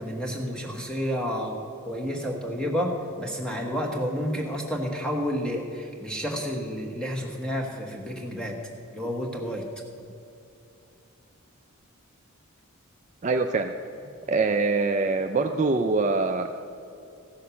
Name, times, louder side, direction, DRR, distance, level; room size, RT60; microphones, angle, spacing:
voice 1, 0.0-1.6 1.8-8.6 8.9-9.6, equal, 5° left, 0 dB, 1.2 m, -30 dB
voice 2, 13.2-13.7 14.3-16.5, right 3 dB, 35° right, 5 dB, 0.3 m, -24 dB
15.0 x 6.5 x 6.9 m, 2.7 s
head